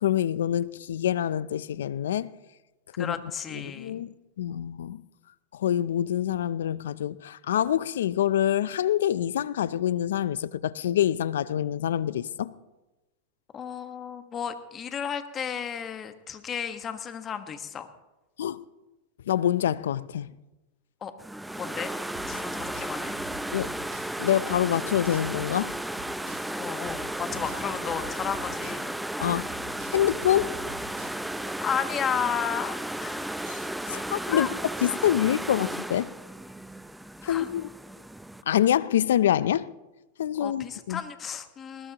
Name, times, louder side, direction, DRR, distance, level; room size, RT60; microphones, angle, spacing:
voice 1, 0.0-2.3 3.0-3.2 3.5-5.0 5.5-12.5 18.4-18.6 19.3-20.3 23.5-23.7 24.2-25.7 29.2-29.5 29.9-30.6 33.5-33.6 33.9-36.1 37.2-37.7 38.5-39.7 40.2-41.0, left 11 dB, 85° left, 0.6 m, -26 dB
voice 2, 3.0-4.0 13.5-17.9 21.0-21.1 21.6-21.9 22.3-23.2 26.6-28.9 31.4-33.3 34.3-34.5 37.2-37.5 40.4-41.9, left 7 dB, 25° left, 1.4 m, -33 dB
sound 1, 21.2-38.4, right 1 dB, 5° right, 0.6 m, -34 dB
sound 2, 22.2-24.2 24.5-26.6 26.9-28.9 29.2-31.5, right 3 dB, 55° right, 4.1 m, -46 dB
20.5 x 19.5 x 3.0 m
hypercardioid pair, 125°, 0 cm